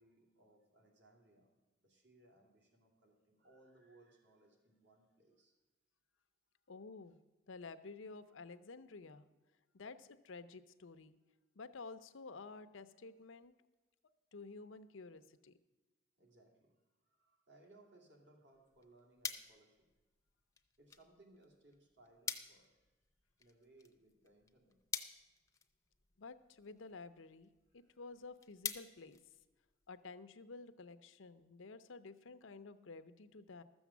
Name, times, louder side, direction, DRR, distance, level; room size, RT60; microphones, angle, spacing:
voice 1, 0.0-5.5 16.2-19.9 20.8-22.8 23.4-24.8 27.7-28.0, right 2 dB, 65° right, 0 dB, 2.6 m, -66 dB
voice 2, 6.7-7.2 7.5-9.3 9.7-11.2 11.6-13.5 14.3-15.5 26.2-29.2 29.9-33.6, left 4 dB, 90° left, 12 dB, 0.7 m, -52 dB
sound 1, 18.5-30.0, left 6 dB, 15° left, 0.6 m, -49 dB
13.0 x 7.2 x 7.1 m, 1.2 s
head